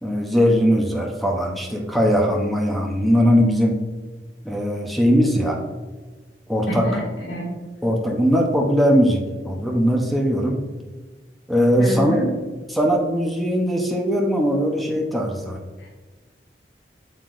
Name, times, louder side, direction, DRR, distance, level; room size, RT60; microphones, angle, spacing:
voice 1, 0.0-3.8 4.4-5.6 6.5-7.0 7.8-10.6 11.5-12.3 12.7-15.6, equal, ahead, 0 dB, 0.8 m, -20 dB
voice 2, 6.8-7.5 11.8-12.3 15.8-15.9, equal, 85° left, -5 dB, 1.8 m, -28 dB
7.6 x 6.6 x 2.5 m, 1.3 s
head